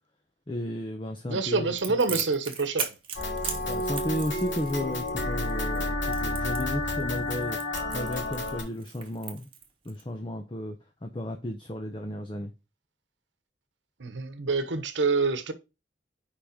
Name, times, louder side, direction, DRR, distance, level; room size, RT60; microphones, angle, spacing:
voice 1, 0.5-1.7 2.1-2.3 3.6-9.5 9.8-12.5, left 1 dB, 25° left, 0.7 m, -34 dB
voice 2, 1.3-2.9 3.5-3.7 14.0-15.5, right 4 dB, 80° right, 1.0 m, -27 dB
Crackle, 1.8-10.0, right 7 dB, 30° right, 1.2 m, -38 dB
sound 1, 3.1-8.6, left 2 dB, 85° left, 2.5 m, -30 dB
5.6 x 4.9 x 5.1 m
head